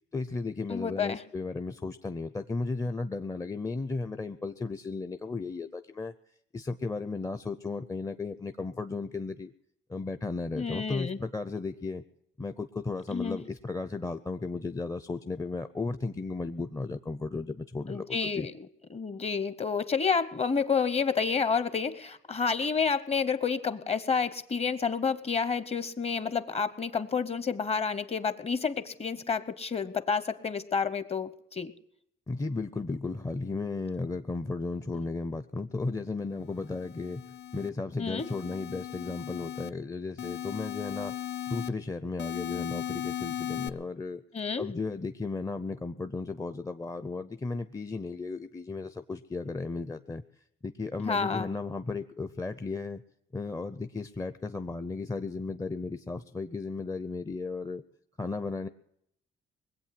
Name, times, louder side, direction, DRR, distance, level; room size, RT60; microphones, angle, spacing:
voice 1, 0.1-6.1 6.5-9.5 9.9-12.0 12.4-18.5 32.3-37.2 37.5-41.1 41.5-44.2 44.6-50.2 50.6-53.0 53.3-57.8 58.2-58.7, left 3 dB, 15° left, 10 dB, 0.6 m, -35 dB
voice 2, 0.7-1.2 10.6-11.2 13.1-13.4 17.9-18.5 18.9-31.7 34.9-35.1 38.0-38.3 44.3-44.7 51.0-51.5, left 5 dB, 30° left, 14 dB, 0.9 m, -29 dB
sound 1, 36.6-37.7 38.2-39.7 40.2-41.7 42.2-43.7, left 11 dB, 60° left, 0.6 m, -37 dB
20.5 x 8.1 x 7.5 m, 0.74 s
cardioid pair, 90°, 20 cm